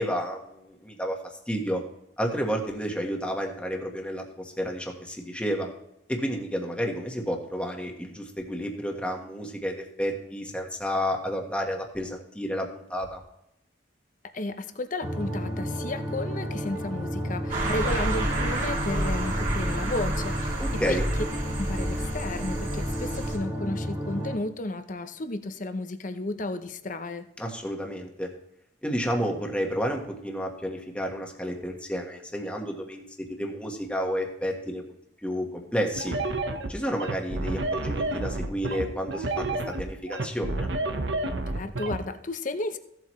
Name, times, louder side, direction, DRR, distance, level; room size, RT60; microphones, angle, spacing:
voice 1, 0.0-1.8 2.2-5.7 6.1-13.2 20.6-21.0 27.4-28.3 28.8-33.0 33.3-34.8 35.2-36.2 36.7-40.7, equal, 5° left, 1 dB, 1.4 m, -31 dB
voice 2, 14.3-21.0 21.6-27.3 41.5-42.8, left 2 dB, 45° left, 9 dB, 0.8 m, -33 dB
sound 1, 15.0-24.4, equal, 20° right, 2.0 m, -32 dB
sound 2, 17.5-23.4, right 1 dB, 45° right, 2.6 m, -30 dB
sound 3, 36.0-42.0, right 2 dB, 90° right, 1.0 m, -29 dB
16.0 x 7.7 x 3.2 m, 0.82 s
head